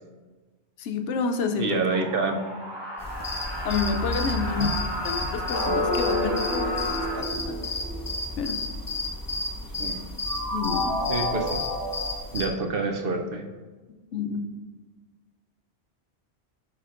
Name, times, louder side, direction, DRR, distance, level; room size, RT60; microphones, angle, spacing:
voice 1, 0.8-1.8 3.6-7.6 8.4-8.6 10.5-10.9 14.1-14.4, left 5 dB, 80° left, 6 dB, 0.9 m, -29 dB
voice 2, 1.6-2.3 4.4-4.7 9.8-10.0 11.1-11.6 12.3-13.4, right 3 dB, 55° right, 3 dB, 0.7 m, -28 dB
sound 1, 1.9-7.2, left 1 dB, 25° right, 1.1 m, -33 dB
sound 2, 3.0-12.5, left 2 dB, 25° left, 0.5 m, -32 dB
sound 3, 5.5-8.5 10.3-12.1, left 1 dB, 45° left, 1.2 m, -29 dB
10.0 x 4.1 x 2.5 m, 1.3 s
omnidirectional pair, 1.2 m